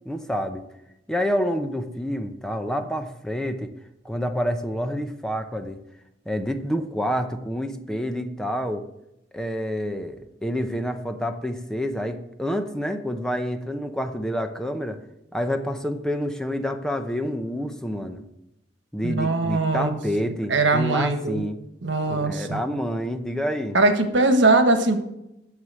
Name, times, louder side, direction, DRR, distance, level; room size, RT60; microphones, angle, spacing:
voice 1, 0.1-0.6 1.1-3.7 4.0-5.8 6.3-8.8 9.3-10.2 10.4-15.0 15.3-18.2 18.9-21.6 22.1-23.8, equal, 5° left, 6 dB, 0.7 m, -28 dB
voice 2, 19.0-20.0 20.3-21.4 21.8-22.6 23.7-25.0, right 2 dB, 80° right, 7 dB, 1.4 m, -21 dB
9.7 x 7.5 x 7.5 m, 0.87 s
head